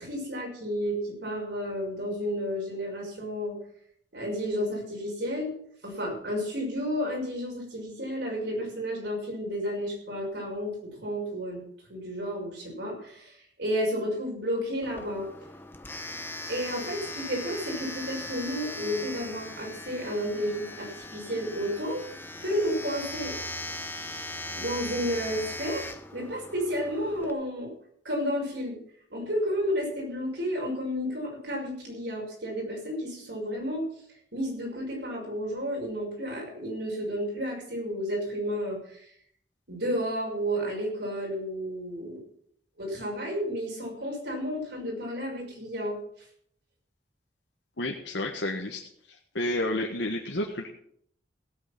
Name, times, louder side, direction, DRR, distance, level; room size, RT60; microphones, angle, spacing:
voice 1, 0.0-3.6 4.1-5.5 5.8-11.6 11.9-15.3 16.5-22.0 22.4-23.3 24.5-27.7 28.0-28.8 29.1-33.8 34.3-39.0 39.7-42.2 42.8-46.0, equal, 70° right, -1 dB, 6.0 m, -32 dB
Domestic sounds home sounds, 14.8-27.3, left 1 dB, 10° left, 0.9 m, -39 dB
voice 2, 47.8-48.8 49.1-50.7, left 1 dB, 75° left, 1 dB, 1.4 m, -30 dB
17.0 x 8.5 x 6.0 m, 0.67 s
head